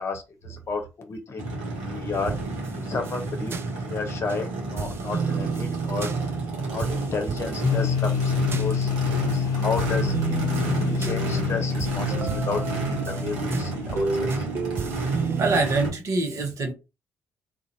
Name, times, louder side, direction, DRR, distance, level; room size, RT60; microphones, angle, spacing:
voice 1, 0.0-1.5 1.8-2.3 2.7-6.1 6.7-10.1 10.6-14.5, left 4 dB, 45° left, 0.8 m, -32 dB
Race car auto racing / Idling / Accelerating revving vroom, 1.4-15.9, right 2 dB, 75° right, 1.0 m, -31 dB
sound 1, 2.1-4.4 4.8-9.4 9.8-15.6, right 5 dB, 40° right, 0.4 m, -32 dB
sound 2, 7.6-14.4, left 7 dB, 65° left, 0.5 m, -28 dB
voice 2, 15.4-16.7, right 3 dB, 55° right, 1.1 m, -24 dB
2.5 x 2.5 x 2.8 m
hypercardioid pair, 50°, 6 cm